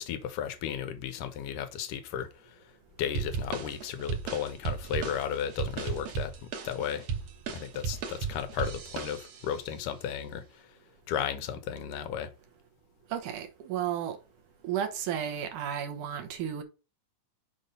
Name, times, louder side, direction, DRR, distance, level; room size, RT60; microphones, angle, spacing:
voice 1, 0.0-2.3 3.0-6.3 6.6-7.1 7.5-10.4 11.1-12.3, left 8 dB, 80° left, 2.4 m, -34 dB
sound 1, 3.1-9.6, right 6 dB, 60° right, 2.2 m, -35 dB
voice 2, 13.1-14.2 14.6-16.6, right 9 dB, 75° right, 2.6 m, -33 dB
6.4 x 5.2 x 5.5 m
omnidirectional pair, 3.7 m